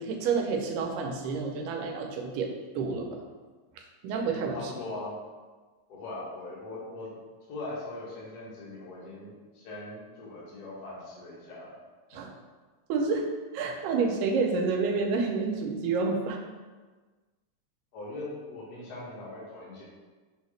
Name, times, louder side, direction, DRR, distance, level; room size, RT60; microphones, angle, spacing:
voice 1, 0.0-3.2 4.0-4.7 12.1-12.3 12.9-13.3 13.5-16.4, right 4 dB, 85° right, 2 dB, 2.2 m, -29 dB
voice 2, 4.5-5.2 5.9-7.1 7.5-11.7 17.9-19.8, left 2 dB, 85° left, -6 dB, 0.8 m, -40 dB
6.0 x 2.7 x 3.2 m, 1.3 s
omnidirectional pair, 3.7 m